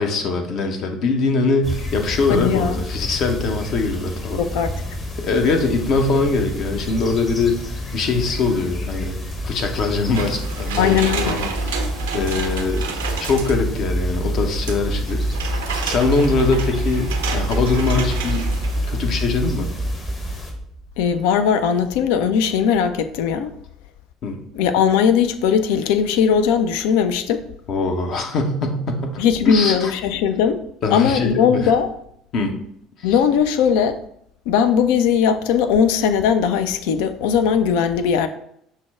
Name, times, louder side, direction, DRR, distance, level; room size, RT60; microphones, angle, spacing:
voice 1, 0.0-4.4 5.2-9.2 9.4-11.0 11.2-12.9 13.2-15.3 15.8-18.5 18.9-19.7 24.2-24.4 27.7-29.9 30.8-31.7 32.3-32.6 33.0-33.1, left 3 dB, 50° left, 0.7 m, -22 dB
sound 1, 1.6-20.5, left 2 dB, 30° left, 1.0 m, -33 dB
voice 2, 2.3-2.8 4.4-4.7 10.8-11.4 21.0-23.5 24.5-27.4 29.2-30.6 30.9-31.9 33.0-34.0 34.5-38.3, left 7 dB, 65° left, 0.3 m, -19 dB
sound 2, 5.6-20.9, right 1 dB, 5° right, 0.4 m, -27 dB
sound 3, 10.1-13.8 14.7-19.1 19.4-19.5, right 6 dB, 75° right, 0.5 m, -31 dB
5.8 x 2.2 x 3.5 m
figure-of-eight pair, 60°, 0 cm